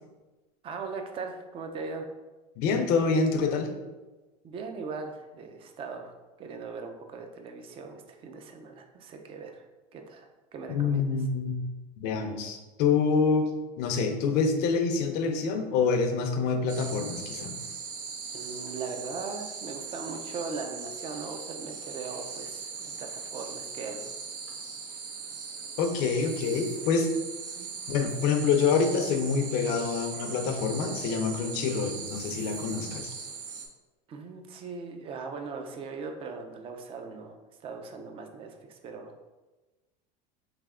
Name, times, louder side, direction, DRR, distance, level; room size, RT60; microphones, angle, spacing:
voice 1, 0.6-2.1 4.4-6.1 6.4-9.6 9.9-11.2 18.3-24.0 27.6-27.7 34.1-37.3 37.6-39.1, right 4 dB, 25° right, 5 dB, 0.4 m, -39 dB
voice 2, 2.6-3.7 10.7-11.6 12.0-13.5 13.8-17.6 25.8-27.1 27.9-33.1, left 5 dB, 55° left, 6 dB, 0.6 m, -26 dB
sound 1, 16.7-33.7, right 5 dB, 75° right, 0.8 m, -39 dB
3.3 x 3.3 x 3.6 m, 1.2 s
supercardioid pair, 140°, 20 cm